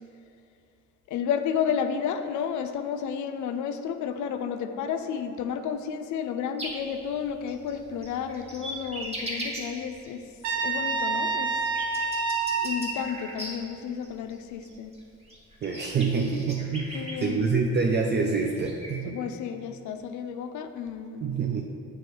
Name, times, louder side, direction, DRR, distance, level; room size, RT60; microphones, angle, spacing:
voice 1, 1.1-10.2 10.6-11.5 12.6-14.9 16.9-17.5 19.0-21.3, left 7 dB, 75° left, 8 dB, 0.5 m, -31 dB
sound 1, 6.6-6.7 7.0-10.1 10.4-13.5 14.0-14.3 14.6-14.7 14.9-15.0 15.3-17.2 18.1-18.9, right 2 dB, 20° right, 1.3 m, -37 dB
Trumpet, 10.4-12.8, right 4 dB, 80° right, 0.7 m, -27 dB
voice 2, 15.6-19.2 21.2-21.6, right 4 dB, 35° right, 1 dB, 0.4 m, -26 dB
7.9 x 3.1 x 4.5 m, 2.5 s
cardioid pair, 90°, 30 cm